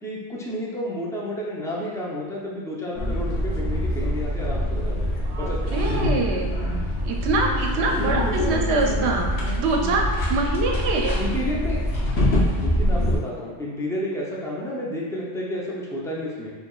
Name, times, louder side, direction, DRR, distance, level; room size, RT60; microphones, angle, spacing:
voice 1, 0.0-5.6 8.0-8.6 11.1-11.8 12.6-16.5, left 1 dB, 5° left, -5 dB, 0.3 m, -31 dB
sound 1, 2.9-13.2, equal, 65° left, 1.0 m, -24 dB
voice 2, 5.3-6.5 7.0-9.3 9.6-11.2, right 2 dB, 70° right, 2 dB, 0.8 m, -24 dB
4.5 x 3.5 x 2.3 m, 1.5 s
omnidirectional pair, 1.2 m